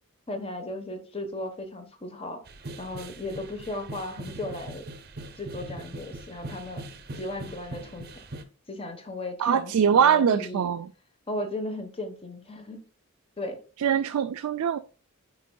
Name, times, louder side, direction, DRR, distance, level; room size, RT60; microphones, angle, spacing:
voice 1, 0.3-2.4 2.8-4.8 5.4-6.8 7.1-8.1 8.7-10.7 11.3-12.8 13.4-13.6, left 1 dB, 25° left, 1.1 m, -36 dB
sound 1, 2.5-8.4, right 1 dB, 45° right, 0.7 m, -41 dB
voice 2, 9.4-10.9 13.8-14.8, right 8 dB, 85° right, 0.4 m, -22 dB
9.4 x 4.7 x 2.3 m
head